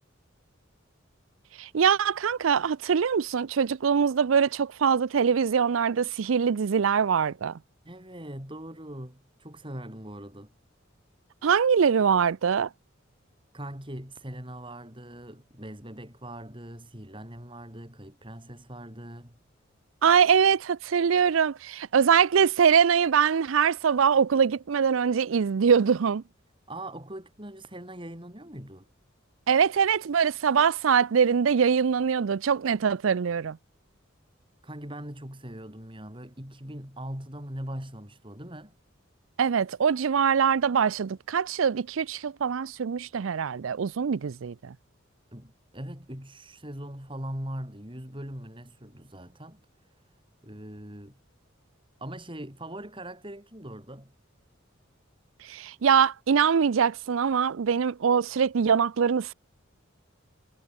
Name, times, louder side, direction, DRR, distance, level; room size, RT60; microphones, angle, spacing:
voice 1, 1.6-7.5 11.4-12.7 20.0-26.2 29.5-33.6 39.4-44.7 55.5-59.3, right 7 dB, 75° right, 0.5 m, -23 dB
voice 2, 7.8-10.5 13.5-19.3 26.7-28.9 34.6-38.7 45.3-49.6 50.4-51.2 52.0-54.1, right 1 dB, 25° right, 6.2 m, -41 dB
head